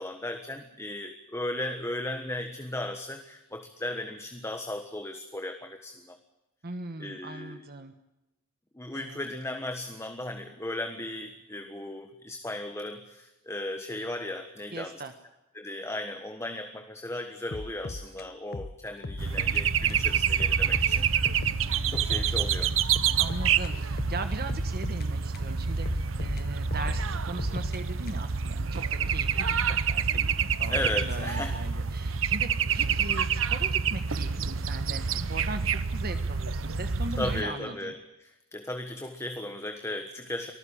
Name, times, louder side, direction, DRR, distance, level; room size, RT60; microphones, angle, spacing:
voice 1, 0.0-6.2 7.0-7.6 8.7-15.0 15.5-21.5 21.9-22.7 30.7-31.5 37.2-38.0 38.2-40.5, left 1 dB, 15° left, 6 dB, 1.4 m, -36 dB
voice 2, 6.6-7.9 8.9-9.3 14.7-15.1 23.2-37.9, right 2 dB, 50° right, 8 dB, 1.3 m, -39 dB
sound 1, 17.5-19.6 19.9-20.0 20.4-22.4 22.6-25.5 25.9-28.4, left 2 dB, 50° left, 0.8 m, -39 dB
sound 2, 19.2-37.4, right 6 dB, 80° right, 0.9 m, -27 dB
24.0 x 15.0 x 8.7 m, 0.95 s
head